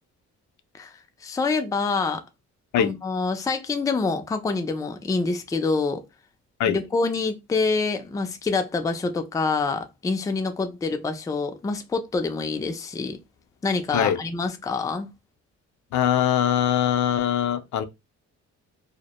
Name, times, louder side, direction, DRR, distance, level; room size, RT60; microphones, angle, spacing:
voice 1, 1.2-2.2 2.8-6.0 6.7-13.2 13.6-15.1, left 4 dB, 10° left, 0.3 m, -26 dB
voice 2, 15.9-17.8, left 10 dB, 75° left, 0.5 m, -22 dB
2.1 x 2.1 x 2.8 m
cardioid pair, 90°, 30 cm